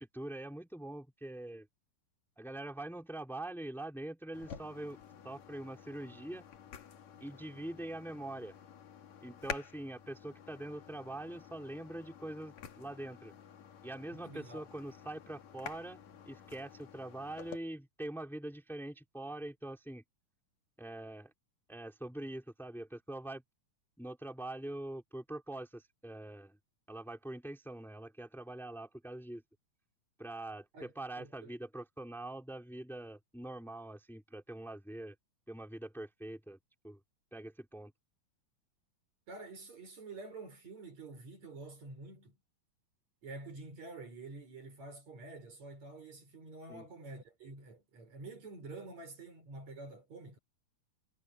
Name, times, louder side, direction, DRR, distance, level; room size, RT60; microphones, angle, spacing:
voice 1, 0.0-1.7 2.4-5.0 5.2-6.4 7.2-8.5 9.2-13.3 13.8-20.0 20.8-21.3 21.7-23.4 24.0-26.6 26.9-29.4 30.2-35.1 35.5-36.6 36.8-37.0 37.3-37.9 46.7-46.9, right 1 dB, ahead, 4.5 m, -44 dB
sound 1, 4.3-17.6, left 8 dB, 65° left, 2.9 m, -50 dB
voice 2, 14.1-14.7 30.7-31.5 39.3-42.4 43.2-50.4, right 3 dB, 55° right, 7.4 m, -48 dB
omnidirectional pair, 3.7 m